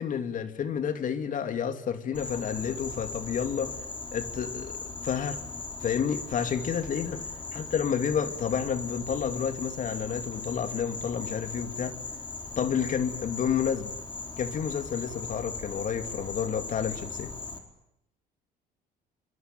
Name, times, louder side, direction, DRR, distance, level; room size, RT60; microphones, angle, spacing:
voice 1, 0.0-3.8 4.1-5.4 5.8-12.0 12.6-14.0 14.4-17.3, left 7 dB, 50° left, 9 dB, 2.7 m, -30 dB
Insect, 2.1-17.6, left 4 dB, 30° left, 4.2 m, -39 dB
25.5 x 25.5 x 9.2 m, 0.80 s
cardioid pair, 110°, 17 cm